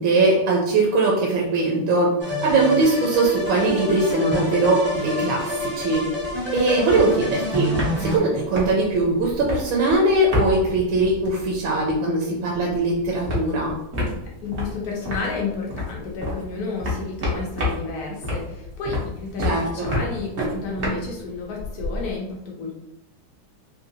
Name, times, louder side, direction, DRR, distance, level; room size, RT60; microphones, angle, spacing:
voice 1, 0.0-2.1 2.4-6.1 6.5-7.7 8.0-13.7 19.4-19.9, right 2 dB, 75° right, -2 dB, 1.3 m, -21 dB
sound 1, 2.2-8.2, left 1 dB, 15° right, 0.4 m, -27 dB
sound 2, 3.4-4.1 4.4-4.5 4.7-12.1 12.4-22.1, left 2 dB, 55° right, 0.7 m, -30 dB
voice 2, 14.4-22.8, left 4 dB, 85° left, -2 dB, 0.8 m, -31 dB
3.5 x 2.7 x 2.6 m, 0.87 s
omnidirectional pair, 2.4 m